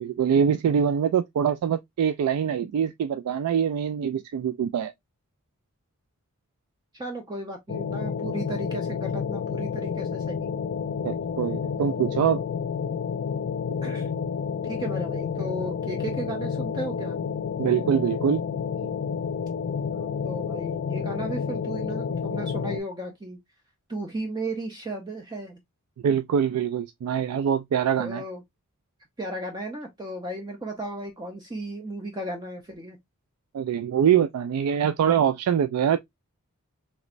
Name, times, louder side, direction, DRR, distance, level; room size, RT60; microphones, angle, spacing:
voice 1, 0.0-4.9 11.0-12.4 17.6-18.4 26.0-28.2 33.5-36.0, right 8 dB, 85° right, 0.3 m, -24 dB
voice 2, 6.9-10.5 13.8-14.1 14.6-17.2 19.9-23.4 23.9-25.6 28.0-28.4 29.2-33.0, right 1 dB, 20° right, 0.5 m, -35 dB
sound 1, 7.7-22.8, left 6 dB, 50° left, 0.3 m, -30 dB
3.1 x 3.1 x 2.4 m
head